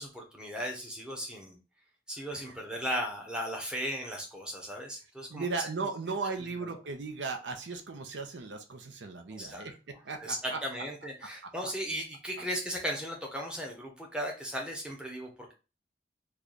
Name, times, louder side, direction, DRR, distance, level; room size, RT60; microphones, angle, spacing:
voice 1, 0.0-1.6 2.1-5.4 9.3-9.6 10.2-15.5, equal, 5° right, 0 dB, 0.7 m, -36 dB
voice 2, 5.3-10.6 11.4-11.5, right 4 dB, 80° right, 6 dB, 0.6 m, -37 dB
3.2 x 2.3 x 3.9 m, 0.32 s
head